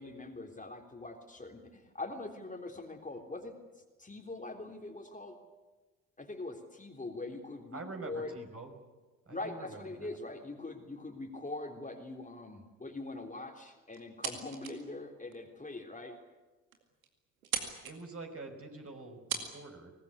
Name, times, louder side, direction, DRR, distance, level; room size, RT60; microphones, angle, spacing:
voice 1, 0.0-3.6 4.0-5.4 6.2-8.4 9.3-16.2, left 2 dB, 20° left, 3 dB, 3.6 m, -43 dB
voice 2, 7.7-8.8 9.3-10.2 17.8-19.9, right 3 dB, 35° right, 4 dB, 5.4 m, -46 dB
sound 1, 13.9-14.9 15.3-15.4 16.1-16.2 16.4-16.5 16.7-17.1 17.4-18.0 18.9-19.0 19.3-19.5, right 7 dB, 85° right, 2.3 m, -37 dB
23.5 x 19.0 x 9.8 m, 1.2 s
hypercardioid pair, 50°, 41 cm